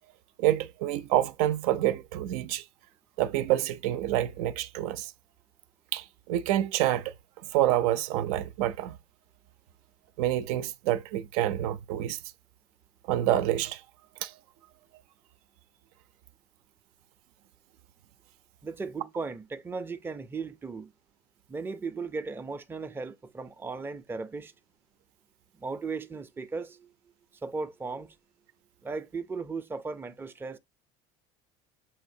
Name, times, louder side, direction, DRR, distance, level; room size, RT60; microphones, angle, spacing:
voice 1, 0.4-2.6 3.2-5.1 5.9-7.1 7.5-9.0 10.2-12.2 13.1-13.8 14.2-14.3, right 13 dB, 85° right, 0.5 m, -27 dB
voice 2, 18.6-20.9 21.5-24.5 25.6-26.9 27.4-28.1 28.8-30.6, right 4 dB, 10° right, 0.4 m, -36 dB
7.0 x 2.7 x 2.7 m
supercardioid pair, 120°, 18 cm